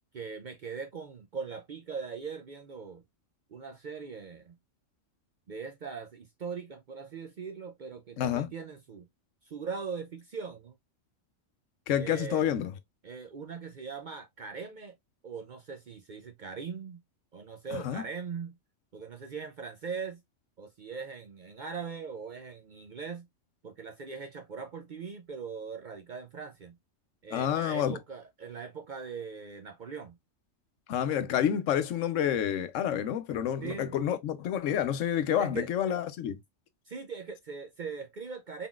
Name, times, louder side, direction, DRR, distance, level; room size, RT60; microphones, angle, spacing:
voice 1, 0.1-3.0 3.5-4.5 5.5-9.1 9.4-10.7 12.0-12.5 13.0-14.9 15.2-17.0 17.3-18.5 18.9-20.2 20.6-23.3 23.6-26.8 27.2-30.2 33.6-34.0 35.4-35.7 36.9-38.7, right 5 dB, 55° right, 0.5 m, -40 dB
voice 2, 8.2-8.5 11.9-12.7 17.7-18.0 27.3-28.0 30.9-36.4, left 9 dB, 80° left, 0.9 m, -29 dB
3.8 x 3.8 x 2.3 m
omnidirectional pair, 1.3 m